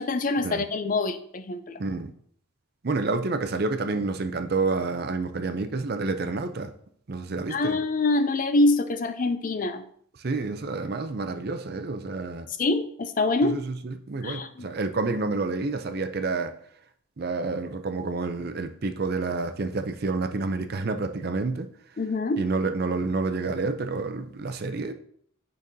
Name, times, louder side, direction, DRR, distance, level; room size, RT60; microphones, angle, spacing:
voice 1, 0.0-1.8 7.5-9.9 12.6-13.6 14.2-14.7 22.0-22.4, left 2 dB, 40° left, 0.4 m, -25 dB
voice 2, 1.8-2.1 2.8-6.7 7.1-7.8 10.2-12.5 13.4-16.5 17.2-21.7 22.4-24.9, right 3 dB, 45° right, 0.5 m, -29 dB
8.7 x 5.3 x 2.7 m
head